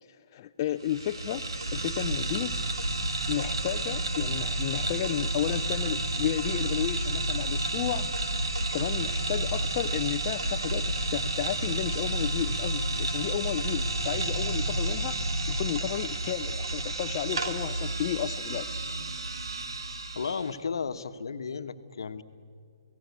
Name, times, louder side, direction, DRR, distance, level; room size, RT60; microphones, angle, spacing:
voice 1, 0.3-2.6 3.3-8.1 8.7-18.8, left 12 dB, 40° left, 6 dB, 0.6 m, -32 dB
sound 1, 0.8-20.5, right 2 dB, 75° right, 2.0 m, -31 dB
voice 2, 20.1-22.2, left 5 dB, 70° left, 9 dB, 1.2 m, -34 dB
29.5 x 17.5 x 8.2 m, 2.2 s
figure-of-eight pair, 135°, 2 cm